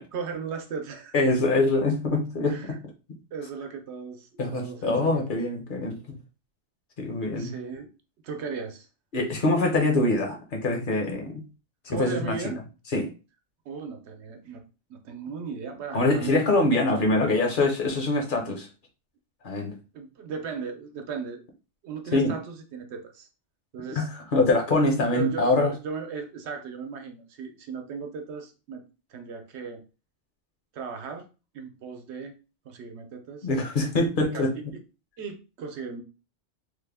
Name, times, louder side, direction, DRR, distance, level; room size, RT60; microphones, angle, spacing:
voice 1, 0.0-1.1 2.5-2.8 3.3-5.3 7.3-7.9 8.2-8.9 11.9-12.6 13.7-14.6 14.9-16.3 16.9-17.0 19.9-21.4 21.8-23.3 23.7-24.1 25.1-28.8 29.1-29.8 30.7-31.2 31.5-32.3 32.6-33.5 34.3-34.8 35.2-36.0, right 5 dB, 80° right, 5 dB, 0.9 m, -36 dB
voice 2, 1.1-2.8 4.4-6.2 7.0-7.5 9.1-11.4 11.9-12.4 12.9-13.1 15.9-18.7 19.4-19.7 22.1-22.4 23.9-25.7 33.4-34.5, left 2 dB, 55° left, 2 dB, 0.8 m, -24 dB
3.3 x 2.1 x 3.4 m, 0.32 s
omnidirectional pair, 1.2 m